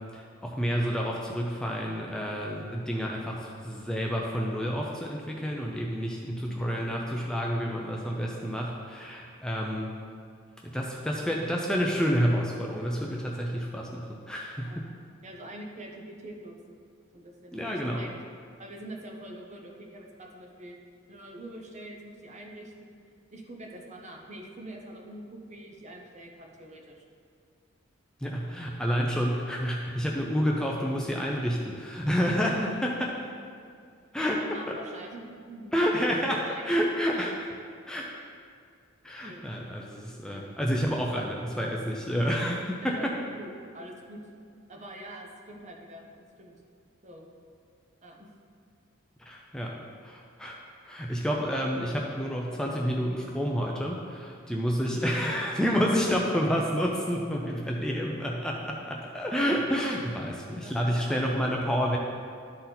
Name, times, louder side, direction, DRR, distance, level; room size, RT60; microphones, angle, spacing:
voice 1, 0.1-9.9 10.6-14.9 17.5-18.0 28.2-33.2 34.1-34.6 35.7-37.5 37.9-38.1 39.0-43.1 49.2-62.0, equal, 5° left, -2 dB, 0.5 m, -29 dB
voice 2, 15.2-16.8 17.1-18.1 18.6-20.8 21.1-23.0 23.3-27.0 34.5-35.8 36.4-36.8 37.1-37.3 39.2-39.5 40.3-40.5 42.8-43.1 43.3-44.2 44.7-46.5 47.0-47.4 48.0-48.3 60.6-61.3 61.9-62.0, right 1 dB, 35° right, 0 dB, 0.9 m, -45 dB
12.0 x 4.2 x 4.0 m, 2.3 s
head